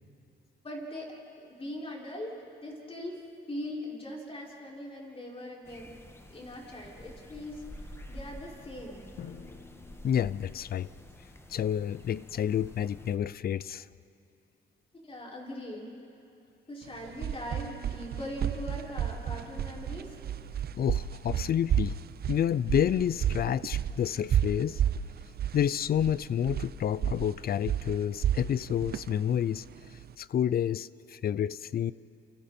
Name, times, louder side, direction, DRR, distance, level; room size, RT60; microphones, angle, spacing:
voice 1, 0.6-2.3 2.6-3.2 3.5-5.9 6.3-9.2 14.9-16.0 16.7-20.1, left 1 dB, 30° left, -3 dB, 5.8 m, -41 dB
sound 1, 5.6-13.2, left 1 dB, 10° left, 1.7 m, -49 dB
Drum, 9.2-11.1, left 7 dB, 85° left, 1.8 m, -49 dB
voice 2, 10.0-10.9 11.5-13.9 20.7-22.0 22.3-24.8 25.5-29.6 30.2-31.9, left 9 dB, 50° left, 19 dB, 0.6 m, -29 dB
sound 2, 16.9-30.1, right 10 dB, 50° right, 0.6 m, -32 dB
30.0 x 28.5 x 4.4 m, 2.8 s
cardioid pair, 90°, 20 cm